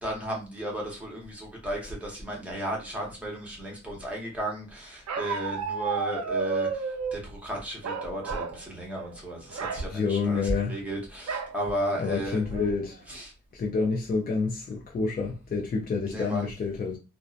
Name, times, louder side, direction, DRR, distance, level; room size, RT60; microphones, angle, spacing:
voice 1, 0.0-6.7 7.1-12.4 13.1-13.3 16.0-16.5, equal, 5° right, 0.8 m, -34 dB
Bark, 5.1-7.2 7.8-8.6 8.9-9.1 9.5-9.8 11.3-11.5 12.1-12.2 12.5-12.9, right 5 dB, 55° right, 0.5 m, -31 dB
voice 2, 9.9-10.8 12.0-13.0 13.6-17.0, left 4 dB, 30° left, 0.4 m, -28 dB
2.6 x 2.1 x 2.4 m
wide cardioid pair, 155°, 31 cm